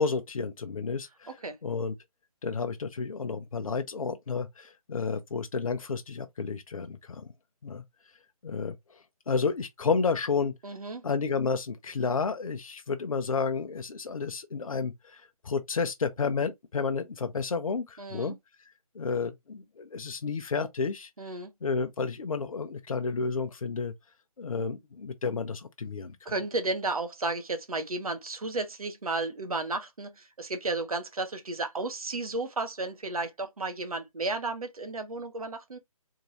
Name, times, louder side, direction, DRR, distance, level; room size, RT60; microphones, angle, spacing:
voice 1, 0.0-1.9 2.4-7.3 7.6-7.8 8.4-10.5 11.0-18.4 18.9-21.1 21.6-23.9 24.4-26.3, left 5 dB, 70° left, 0.7 m, -31 dB
voice 2, 10.6-11.0 18.0-18.3 21.2-21.5 26.2-35.8, right 2 dB, 75° right, 1.3 m, -33 dB
3.7 x 2.6 x 3.1 m
figure-of-eight pair, 155°, 19 cm